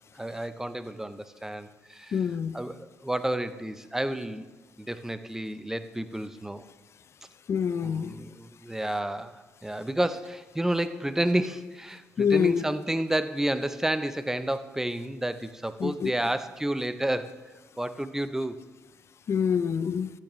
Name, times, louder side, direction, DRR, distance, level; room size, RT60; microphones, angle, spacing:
voice 1, 0.1-2.3 2.5-4.5 4.8-6.7 7.8-17.3 17.8-18.6, right 1 dB, 5° right, 0.6 m, -30 dB
voice 2, 2.1-2.6 7.5-8.1 12.2-12.6 15.8-16.1 19.3-20.1, left 7 dB, 50° left, 0.5 m, -26 dB
13.5 x 8.8 x 3.1 m
supercardioid pair, 65°, 6 cm